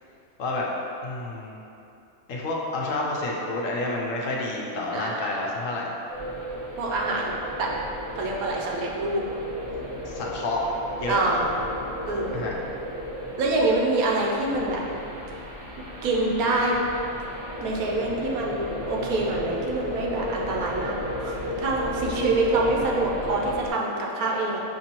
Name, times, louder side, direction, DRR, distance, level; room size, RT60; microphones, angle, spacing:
voice 1, 1.0-1.6 2.3-5.9 10.1-10.6 11.0-11.2 12.3-12.6, left 2 dB, 70° left, -2 dB, 0.9 m, -29 dB
voice 2, 4.9-5.4 6.8-7.3 7.6-7.7 8.2-9.2 11.1-11.5 12.0-12.4 13.4-14.8 16.0-16.8 17.6-24.6, right 2 dB, 80° right, -2 dB, 1.1 m, -26 dB
sound 1, 6.1-23.7, equal, 35° right, 0.5 m, -34 dB
6.6 x 2.7 x 2.9 m, 2.8 s
omnidirectional pair, 1.6 m